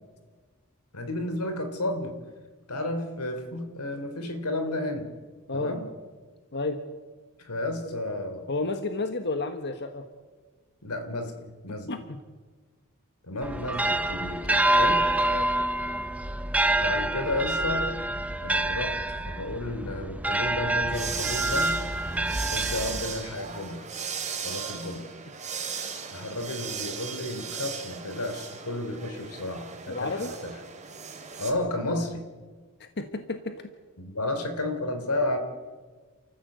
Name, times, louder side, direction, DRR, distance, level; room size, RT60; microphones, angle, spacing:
voice 1, 0.9-2.2 2.7-5.1 5.5-5.8 7.4-8.5 10.8-11.3 11.6-12.1 13.2-15.1 16.8-17.9 18.4-21.7 22.5-23.9 24.4-25.1 26.1-30.6 31.4-32.2 34.0-35.4, left 1 dB, 85° left, 7 dB, 3.2 m, -32 dB
voice 2, 8.5-10.0 11.7-12.2 15.3-15.5 29.9-30.3 32.8-33.7, left 3 dB, 50° left, 7 dB, 1.3 m, -31 dB
sound 1, 13.4-23.3, right 1 dB, 5° right, 0.7 m, -27 dB
sound 2, 20.9-31.5, right 6 dB, 35° right, 3.1 m, -36 dB
29.0 x 14.5 x 8.0 m, 1.4 s
head